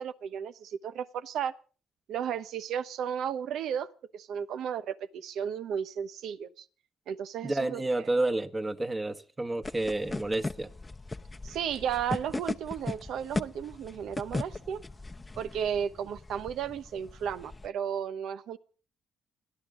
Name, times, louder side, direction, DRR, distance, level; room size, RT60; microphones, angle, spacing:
voice 1, 0.0-1.5 2.1-6.6 7.1-8.1 11.4-14.8 15.4-18.6, right 8 dB, 75° right, 1.0 m, -34 dB
voice 2, 7.4-10.7, right 2 dB, 20° right, 1.3 m, -30 dB
sound 1, 9.6-17.7, left 3 dB, 20° left, 0.8 m, -38 dB
29.5 x 11.0 x 3.7 m
cardioid pair, 90°, 0 cm